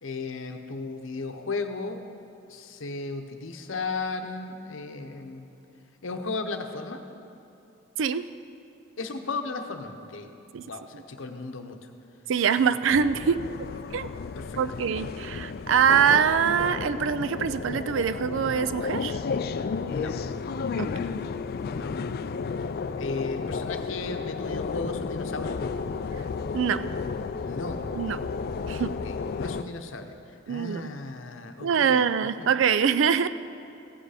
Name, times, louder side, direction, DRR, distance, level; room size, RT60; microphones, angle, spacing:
voice 1, 0.0-2.0 2.5-5.5 6.0-7.0 9.0-10.3 10.6-11.8 14.4-14.8 19.9-20.2 21.7-22.0 23.0-25.6 27.4-27.8 28.9-30.2 30.5-32.0 32.4-32.5, left 3 dB, 75° left, 6 dB, 0.8 m, -35 dB
voice 2, 12.3-13.4 13.9-14.1 14.6-19.2 20.8-20.9 26.5-26.8 27.9-28.2 28.7-28.9 30.5-30.9 31.6-33.3, right 7 dB, 70° right, 13 dB, 0.4 m, -24 dB
sound 1, 12.9-29.6, left 5 dB, 50° left, 0.3 m, -32 dB
15.5 x 8.1 x 4.9 m, 2.7 s
head